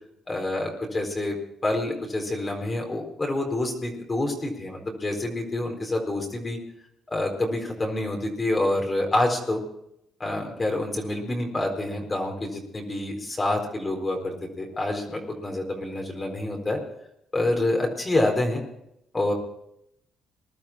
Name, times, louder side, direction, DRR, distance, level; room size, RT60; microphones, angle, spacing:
voice 1, 0.3-1.4 1.6-6.6 7.1-9.6 10.2-16.8 17.3-18.6 19.1-19.3, left 1 dB, 25° left, 2 dB, 4.2 m, -27 dB
21.0 x 12.0 x 4.4 m, 0.78 s
cardioid pair, 90°, 0 cm